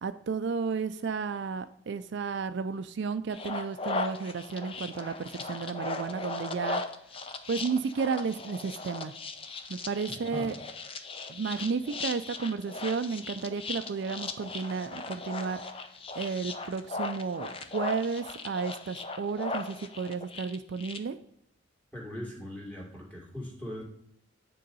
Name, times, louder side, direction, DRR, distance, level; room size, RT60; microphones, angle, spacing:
voice 1, 0.0-6.8 7.5-9.1 9.7-10.5 11.3-15.6 16.2-21.2, right 5 dB, 65° right, 10 dB, 0.4 m, -32 dB
sound 1, 3.3-21.0, left 3 dB, 30° left, 0.6 m, -38 dB
voice 2, 10.1-10.6 21.9-23.8, left 1 dB, 10° left, -3 dB, 2.3 m, -40 dB
9.3 x 3.8 x 5.4 m, 0.71 s
head